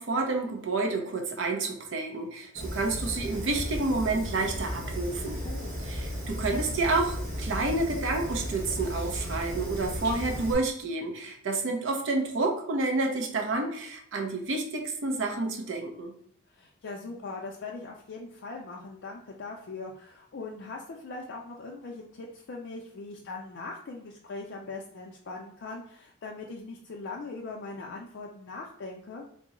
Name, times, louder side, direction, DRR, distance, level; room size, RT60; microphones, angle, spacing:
voice 1, 0.0-5.4 5.9-16.1, right 3 dB, 65° right, 3 dB, 0.5 m, -29 dB
Fire, 2.5-10.5, equal, 45° right, 1.0 m, -35 dB
voice 2, 5.4-5.7 16.5-29.2, left 3 dB, 60° left, -2 dB, 0.4 m, -40 dB
3.7 x 2.0 x 3.6 m, 0.65 s
head